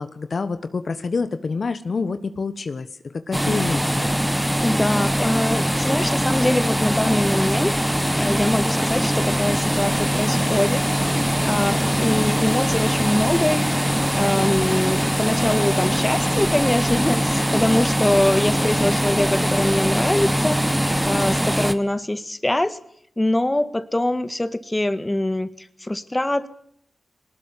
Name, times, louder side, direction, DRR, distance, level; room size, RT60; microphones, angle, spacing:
voice 1, 0.0-4.1, left 4 dB, 60° left, 11 dB, 1.3 m, -27 dB
sound 1, 3.3-21.7, equal, 5° right, 1.5 m, -22 dB
voice 2, 4.6-7.8 8.2-10.9 11.2-13.8 14.1-20.7 21.0-22.8 23.2-26.5, left 1 dB, 20° left, 12 dB, 1.7 m, -23 dB
20.5 x 19.5 x 9.9 m, 0.70 s
cardioid pair, 55°, 0 cm